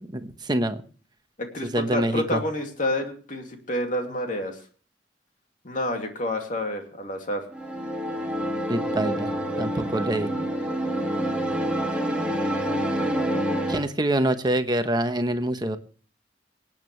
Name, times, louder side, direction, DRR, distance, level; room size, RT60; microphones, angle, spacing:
voice 1, 0.2-0.8 1.7-2.4 8.7-9.3 9.6-10.3 13.7-15.8, right 1 dB, 25° right, 8 dB, 1.0 m, -25 dB
voice 2, 1.4-4.6 5.6-7.5, left 1 dB, 45° left, 3 dB, 2.6 m, -29 dB
sound 1, 7.5-13.9, equal, 5° right, 2.1 m, -27 dB
27.0 x 9.0 x 3.2 m, 0.42 s
head